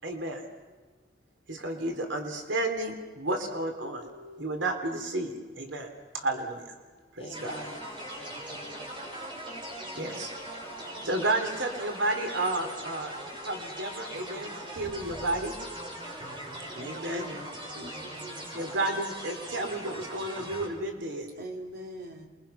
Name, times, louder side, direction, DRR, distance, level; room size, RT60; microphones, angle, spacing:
voice 1, 0.0-0.4 1.5-5.9 6.1-6.6 7.2-7.6 9.9-10.3 11.0-13.1 13.4-15.6 16.8-17.3 18.5-21.3, right 2 dB, 90° right, 5 dB, 3.4 m, -32 dB
voice 2, 7.2-10.3, left 1 dB, 35° left, 1 dB, 4.0 m, -49 dB
sound 1, 7.3-20.7, right 1 dB, 25° right, 6.2 m, -40 dB
voice 3, 16.7-18.7 21.4-22.3, equal, 60° right, 1 dB, 3.9 m, -42 dB
28.0 x 23.5 x 5.9 m, 1.3 s
head